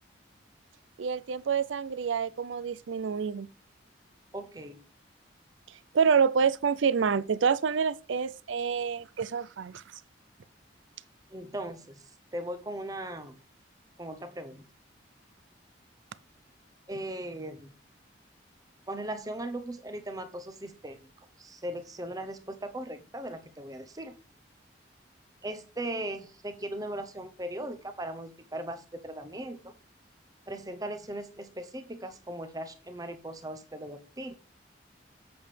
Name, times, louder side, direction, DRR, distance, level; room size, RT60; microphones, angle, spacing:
voice 1, 1.0-3.5 5.9-9.8, right 6 dB, 85° right, 0.5 m, -27 dB
voice 2, 4.3-4.8 11.3-12.0 12.3-13.4 14.0-14.6 16.9-17.7 18.9-21.0 21.4-24.2 25.4-29.7 30.5-34.3, right 1 dB, 20° right, 0.8 m, -38 dB
7.8 x 7.0 x 3.3 m
head